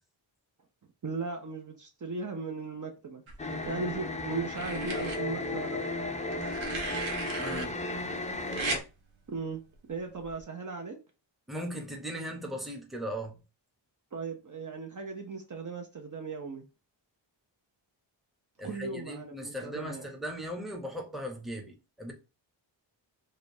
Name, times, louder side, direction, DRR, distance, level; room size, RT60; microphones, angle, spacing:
voice 1, 1.0-3.2 3.7-5.8 9.3-9.6 9.9-11.0 14.1-16.6 18.6-20.1, right 4 dB, 40° right, 0.6 m, -37 dB
sound 1, 3.3-3.9 4.5-5.2 6.3-7.7 8.5-8.8 10.2-10.4, right 3 dB, 85° right, 0.9 m, -36 dB
sound 2, 3.4-8.8, left 2 dB, 15° left, 0.4 m, -34 dB
voice 2, 7.4-7.7 11.5-13.4 18.6-22.1, equal, ahead, 0.8 m, -38 dB
5.0 x 2.3 x 2.6 m
wide cardioid pair, 120°, 46 cm